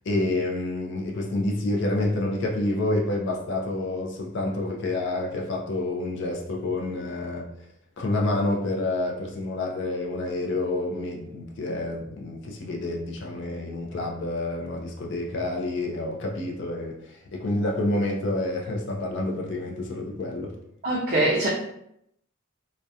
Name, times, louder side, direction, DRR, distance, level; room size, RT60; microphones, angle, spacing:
voice 1, 0.1-7.5 8.0-20.5, left 2 dB, 55° left, 0 dB, 0.4 m, -28 dB
voice 2, 20.8-21.5, right 1 dB, 40° right, -5 dB, 0.4 m, -23 dB
2.3 x 2.1 x 2.6 m, 0.76 s
head